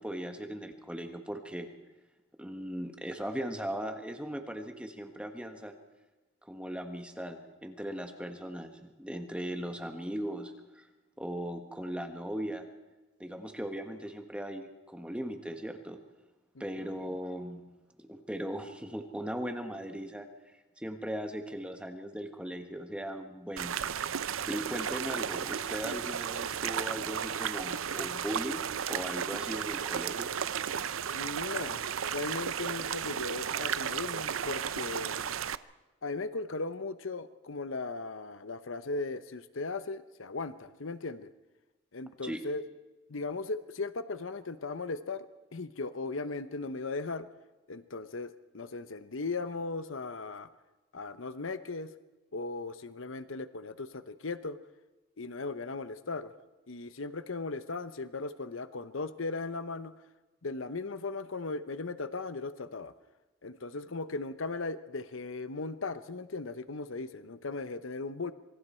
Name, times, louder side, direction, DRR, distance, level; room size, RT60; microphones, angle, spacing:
voice 1, 0.0-1.7 2.4-5.7 6.4-10.9 11.2-12.7 13.2-16.0 16.6-17.6 18.0-20.3 20.8-24.2 24.5-28.6 28.9-30.3 42.2-42.4, equal, 5° right, 5 dB, 1.5 m, -38 dB
sound 1, 23.6-35.6, right 8 dB, 90° right, 0.6 m, -34 dB
voice 2, 31.1-35.3 36.0-41.3 41.9-42.6 43.1-45.3 45.5-47.3 47.7-50.5 50.9-51.9 52.3-54.6 55.2-56.3 56.7-59.9 60.4-62.9 63.4-68.3, left 3 dB, 80° left, 12 dB, 0.9 m, -37 dB
26.5 x 24.0 x 4.5 m, 1.1 s
head